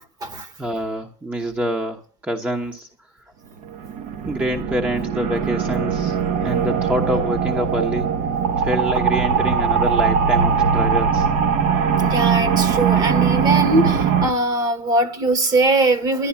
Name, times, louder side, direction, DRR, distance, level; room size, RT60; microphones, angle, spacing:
voice 1, 0.6-2.9 4.3-8.1 8.6-11.3, equal, 10° right, 1.0 m, -26 dB
sound 1, 3.6-14.3, right 6 dB, 50° right, 1.0 m, -20 dB
voice 2, 12.0-16.3, right 2 dB, 25° right, 1.3 m, -20 dB
11.5 x 10.0 x 7.0 m
supercardioid pair, 120°, 14 cm